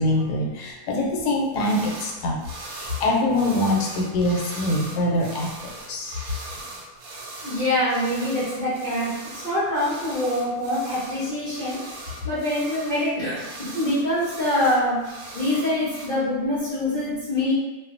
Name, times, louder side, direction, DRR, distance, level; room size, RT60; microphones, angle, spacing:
voice 1, 0.0-2.4 2.7-6.2, left 1 dB, 85° left, -1 dB, 1.1 m, -24 dB
sound 1, 1.6-2.1 2.4-16.1, right 2 dB, 70° right, 0.9 m, -39 dB
voice 2, 7.4-9.1 9.4-11.8 12.2-15.0 15.3-17.5, left 1 dB, 40° left, -12 dB, 0.7 m, -24 dB
2.4 x 2.3 x 2.4 m, 1.1 s
omnidirectional pair, 1.7 m